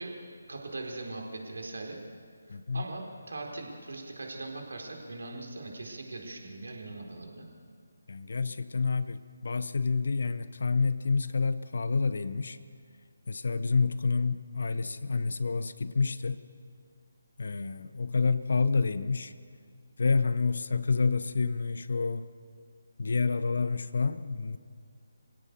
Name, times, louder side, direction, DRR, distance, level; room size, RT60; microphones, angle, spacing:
voice 1, 0.0-2.0 2.5-7.5, right 2 dB, 60° right, 1 dB, 4.4 m, -40 dB
voice 2, 2.5-2.8 8.1-12.6 13.3-16.4 17.4-19.3 20.0-22.3 23.0-24.6, left 4 dB, 55° left, 14 dB, 0.9 m, -28 dB
26.5 x 16.5 x 6.9 m, 2.1 s
figure-of-eight pair, 150°, 0 cm